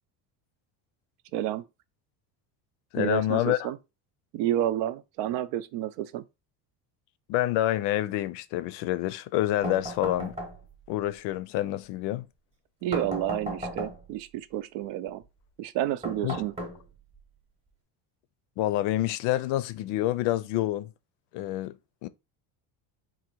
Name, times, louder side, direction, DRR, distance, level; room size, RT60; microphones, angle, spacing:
voice 1, 1.3-1.6 3.0-3.8 4.3-6.2 12.8-15.2 15.6-16.5, right 12 dB, 75° right, 0.6 m, -30 dB
voice 2, 2.9-3.7 7.3-10.4 10.9-12.2 16.2-16.4 18.6-20.9 21.3-21.7 22.0-22.1, left 14 dB, 70° left, 0.5 m, -27 dB
sound 1, 9.6-10.9 12.9-14.2 16.0-17.2, equal, 15° right, 0.9 m, -36 dB
4.0 x 2.6 x 4.4 m
cardioid pair, 165°, 43 cm